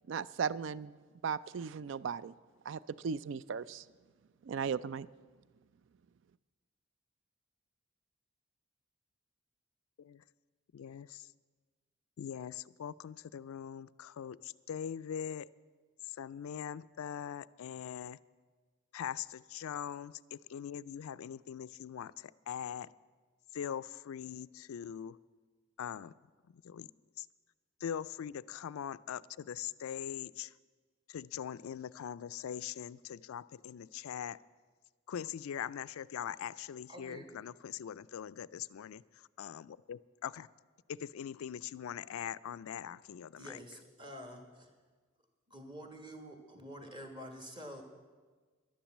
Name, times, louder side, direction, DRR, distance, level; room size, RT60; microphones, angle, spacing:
voice 1, 0.1-0.9 1.2-2.3 2.7-3.8 4.4-5.1, right 6 dB, 60° right, 18 dB, 0.3 m, -36 dB
voice 2, 10.7-11.3 12.2-15.5 16.1-18.2 18.9-22.9 23.5-25.2 25.8-26.1 26.6-26.9 27.2-27.3 27.8-30.5 31.1-34.4 35.1-40.5 40.9-43.6, left 9 dB, 85° left, 17 dB, 0.3 m, -42 dB
voice 3, 36.9-37.4 43.4-44.7 45.5-47.8, equal, 20° right, 4 dB, 1.5 m, -48 dB
11.5 x 10.0 x 7.2 m, 1.4 s
head